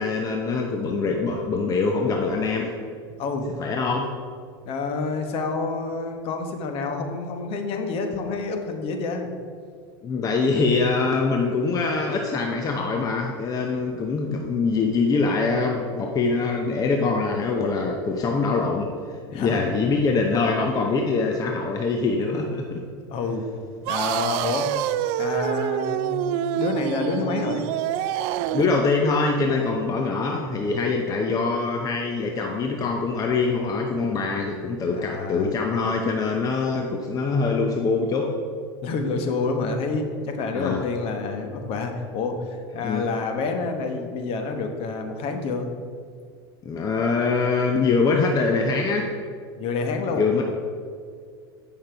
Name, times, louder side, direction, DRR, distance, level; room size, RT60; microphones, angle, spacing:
voice 1, 0.0-2.7 3.6-4.1 10.0-22.8 28.5-38.3 40.5-40.8 42.8-43.1 46.6-49.1 50.2-50.4, left 4 dB, 30° left, 1 dB, 0.8 m, -24 dB
voice 2, 3.2-3.5 4.6-9.3 19.3-19.7 23.1-23.5 23.9-24.7 25.2-27.7 35.0-35.5 38.8-45.7 49.6-50.3, left 4 dB, 45° left, 5 dB, 1.1 m, -28 dB
sound 1, 23.9-28.8, right 12 dB, 60° right, 0.4 m, -26 dB
8.7 x 5.6 x 4.5 m, 2.1 s
supercardioid pair, 110°, 13 cm